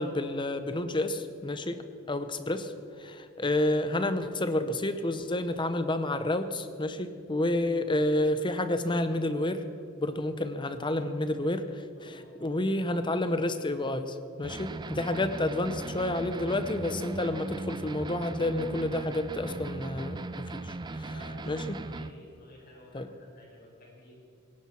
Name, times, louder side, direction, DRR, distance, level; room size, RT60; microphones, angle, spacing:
voice 1, 0.0-1.8 2.1-2.7 3.0-9.6 10.0-21.1 21.5-21.8 22.9-23.1, left 1 dB, 25° left, 10 dB, 0.8 m, -30 dB
voice 2, 11.9-12.3 21.0-24.3, left 1 dB, 45° left, -2 dB, 5.0 m, -53 dB
sound 1, 14.4-22.1, right 2 dB, 20° right, 0.4 m, -38 dB
18.5 x 17.5 x 4.4 m, 2.5 s
head